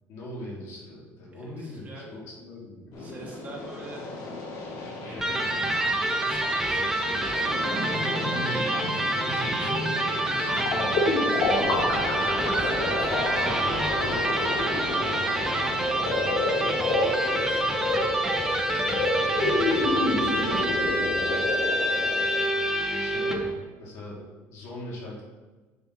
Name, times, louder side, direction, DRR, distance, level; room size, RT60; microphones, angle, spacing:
voice 1, 0.1-3.0 8.0-11.1 11.6-12.3 15.6-15.8 16.2-16.5 22.0-22.2 22.4-22.7 23.0-25.2, left 1 dB, 60° left, -4 dB, 2.6 m, -41 dB
voice 2, 1.3-2.2 3.0-4.1 5.0-5.7 6.2-6.9 8.6-9.7 11.3-11.8 12.6-13.7 14.2-14.6 16.8-19.6 19.8-21.1, right 2 dB, 30° right, -4 dB, 2.1 m, -44 dB
sound 1, 2.9-22.4, left 2 dB, 80° left, 2.6 m, -30 dB
Electric guitar, 5.2-23.5, right 1 dB, 10° right, 0.8 m, -27 dB
8.4 x 7.1 x 3.1 m, 1.3 s
cardioid pair, 140°, 6 cm